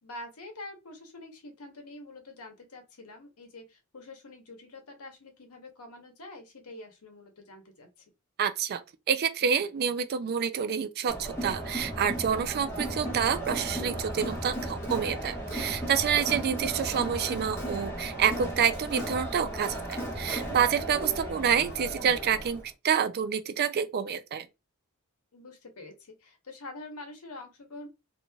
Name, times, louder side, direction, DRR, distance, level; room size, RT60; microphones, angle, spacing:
voice 1, 0.0-8.1 25.3-27.9, left 2 dB, 85° left, 0.9 m, -46 dB
voice 2, 8.4-8.8 9.1-24.5, right 7 dB, 45° right, 0.3 m, -28 dB
Crowd, 11.1-22.6, right 1 dB, 10° left, 1.2 m, -35 dB
3.0 x 2.6 x 2.2 m
head